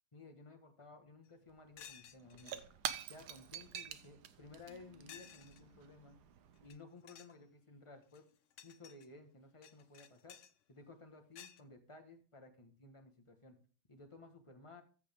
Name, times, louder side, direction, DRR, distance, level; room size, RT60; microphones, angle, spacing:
voice 1, 0.1-2.6 3.1-6.2 6.6-8.2 8.6-10.4 10.7-13.6 13.9-14.8, left 3 dB, 20° left, 5 dB, 1.1 m, -56 dB
sound 1, 1.3-1.4 1.8-2.6 3.2-3.3 3.5-4.1 5.1-5.6 6.6-6.8 7.0-7.4 8.0-9.1 9.6-10.5 11.3-11.6, left 9 dB, 90° left, 0.6 m, -56 dB
Shatter / Crushing, 1.5-1.6 1.8-6.7, right 9 dB, 65° right, 1.2 m, -47 dB
Marimba xylophone, 4.7-6.8, equal, 45° left, 0.7 m, -65 dB
14.0 x 5.1 x 3.5 m, 0.38 s
omnidirectional pair, 2.1 m